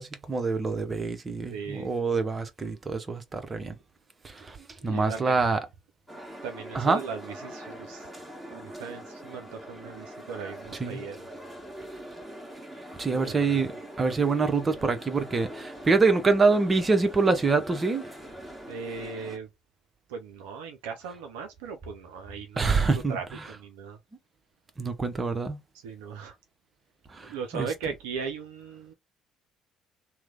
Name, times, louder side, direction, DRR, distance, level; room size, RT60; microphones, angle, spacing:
voice 1, 0.0-3.8 4.2-4.6 4.8-5.6 6.7-7.0 10.8-11.0 13.0-13.7 14.0-18.0 22.6-23.2 24.8-25.6 27.1-27.7, right 4 dB, 30° right, 0.9 m, -25 dB
voice 2, 1.5-1.9 4.8-5.5 6.4-8.1 8.5-11.3 13.1-13.6 18.7-19.5 20.1-24.0 25.7-26.4 27.2-28.9, right 6 dB, 75° right, 0.5 m, -38 dB
sound 1, 6.1-19.4, equal, 5° right, 1.5 m, -43 dB
3.0 x 2.2 x 3.7 m
figure-of-eight pair, 50°, 0 cm